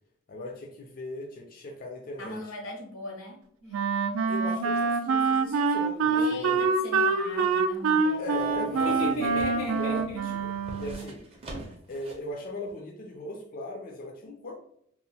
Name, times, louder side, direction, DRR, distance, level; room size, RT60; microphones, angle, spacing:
voice 1, 0.3-2.4 4.3-6.6 8.2-9.4 9.8-11.2 11.9-14.6, left 1 dB, 45° left, 1 dB, 0.4 m, -38 dB
voice 2, 2.2-3.8 6.1-10.3, left 3 dB, 85° left, 0 dB, 0.8 m, -37 dB
Wind instrument woodwind instrument, 3.7-11.1, right 4 dB, 80° right, 0.3 m, -26 dB
sound 1, 7.2-12.3 12.7-12.8, right 1 dB, 30° right, 0.5 m, -45 dB
2.9 x 2.0 x 2.7 m, 0.70 s
head